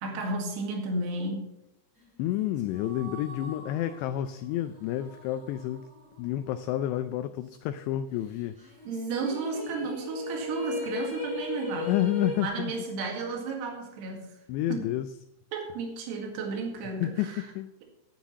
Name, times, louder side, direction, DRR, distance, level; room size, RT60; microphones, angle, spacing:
voice 1, 0.0-1.5 8.9-12.1 12.4-14.3 14.7-14.9 15.5-17.4, right 3 dB, 70° right, 2 dB, 3.9 m, -33 dB
voice 2, 2.2-5.9 6.2-8.6 11.9-12.7 14.5-15.1 17.0-17.7, left 13 dB, 80° left, 9 dB, 2.6 m, -30 dB
sound 1, 2.3-6.9 7.2-7.3 8.6-12.5, left 3 dB, 25° right, 4.6 m, -39 dB
10.0 x 9.5 x 5.7 m, 0.84 s
omnidirectional pair, 5.2 m